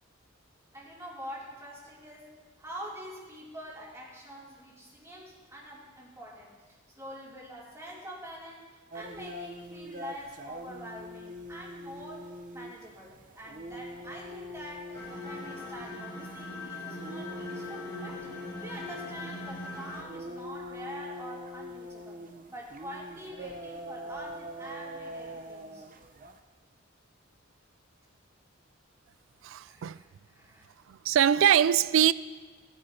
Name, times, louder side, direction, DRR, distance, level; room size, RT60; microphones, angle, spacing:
voice 1, 0.7-6.5 6.9-8.7 8.9-18.3 18.6-22.2 22.5-25.9 29.6-30.6, equal, 15° right, 2.7 m, -45 dB
sound 1, 8.9-26.4, left 1 dB, 40° right, 0.7 m, -43 dB
sound 2, 14.9-20.0, left 2 dB, 20° left, 1.5 m, -41 dB
voice 2, 29.4-30.0 30.9-32.1, right 9 dB, 70° right, 0.3 m, -23 dB
18.5 x 9.8 x 2.8 m
head